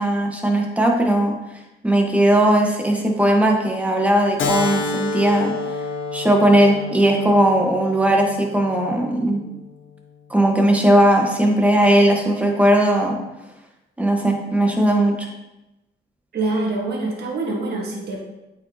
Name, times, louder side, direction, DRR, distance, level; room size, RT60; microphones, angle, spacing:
voice 1, 0.0-1.3 1.8-5.5 6.1-9.4 10.3-13.2 14.0-15.3, right 1 dB, 5° right, 0 dB, 1.3 m, -18 dB
Keyboard (musical), 4.4-9.5, left 3 dB, 75° left, 0.9 m, -29 dB
voice 2, 16.3-18.2, right 2 dB, 55° right, -2 dB, 1.5 m, -25 dB
8.7 x 4.8 x 2.9 m, 1.0 s
cardioid pair, 90°, 20 cm